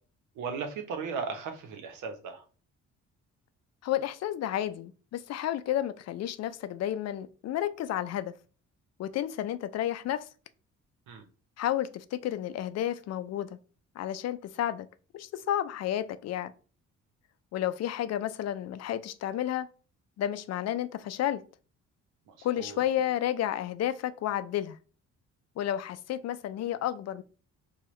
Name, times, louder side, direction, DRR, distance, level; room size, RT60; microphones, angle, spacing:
voice 1, 0.4-2.4 11.1-11.3 22.4-22.8, right 5 dB, 85° right, 0.9 m, -36 dB
voice 2, 3.8-8.3 9.0-10.3 11.6-13.6 14.0-14.9 15.1-16.5 17.5-19.7 20.2-21.4 22.4-24.8 25.6-27.2, left 11 dB, 60° left, 0.4 m, -31 dB
4.6 x 2.3 x 3.0 m
cardioid pair, 90°, 30 cm